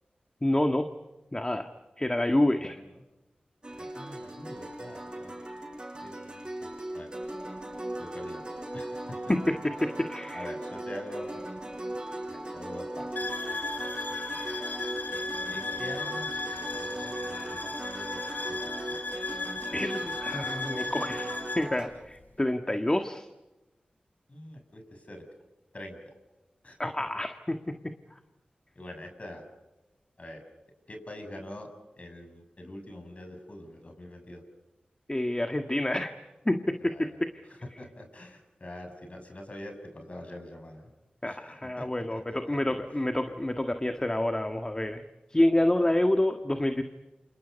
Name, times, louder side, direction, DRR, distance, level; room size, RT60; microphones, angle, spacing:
voice 1, 0.4-0.9 1.3-1.7 2.0-2.8 9.3-10.5 19.7-23.3 26.8-27.7 35.1-36.1 36.4-37.3 41.2-45.0 45.3-46.8, left 1 dB, 25° left, 6 dB, 1.7 m, -28 dB
sound 1, 3.6-21.9, right 1 dB, 30° right, 7.0 m, -38 dB
voice 2, 3.8-5.3 6.0-7.2 8.0-8.5 8.7-9.3 10.3-11.4 12.3-13.2 14.1-14.4 15.5-18.6 18.9-19.0 24.3-25.2 25.7-26.1 26.6-26.9 28.8-29.4 30.2-30.4 30.9-31.7 32.0-34.4 36.8-40.9 41.3-42.7, left 1 dB, 45° left, 5 dB, 7.3 m, -45 dB
sound 2, 13.2-21.7, left 3 dB, 70° left, 5.9 m, -36 dB
29.0 x 27.5 x 5.4 m, 1.1 s
cardioid pair, 45°, 3 cm